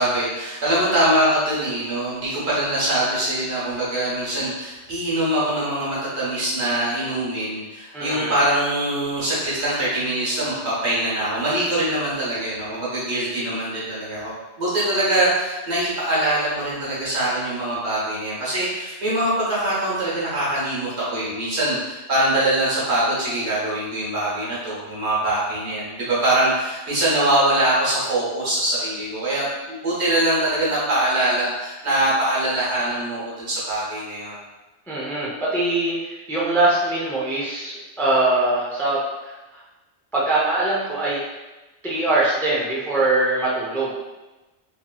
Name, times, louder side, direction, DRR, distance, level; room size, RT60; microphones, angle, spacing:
voice 1, 0.0-34.4, right 1 dB, 70° right, -8 dB, 1.4 m, -23 dB
voice 2, 7.9-8.3 34.9-39.3 40.1-41.2 41.8-43.9, right 2 dB, 5° left, -7 dB, 0.3 m, -22 dB
2.9 x 2.9 x 2.3 m, 1.1 s
omnidirectional pair, 1.1 m